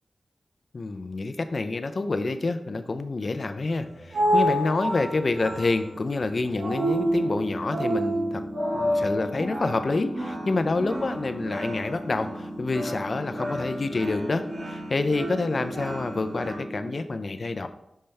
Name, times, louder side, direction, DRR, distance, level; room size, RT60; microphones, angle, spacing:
voice 1, 0.7-8.4 8.7-17.7, left 3 dB, 50° left, 9 dB, 0.5 m, -28 dB
sound 1, 3.7-16.5, equal, 50° right, 1.2 m, -30 dB
sound 2, 7.0-17.0, equal, 15° right, 0.8 m, -38 dB
5.5 x 5.5 x 3.3 m, 0.82 s
wide cardioid pair, 95°, 0 cm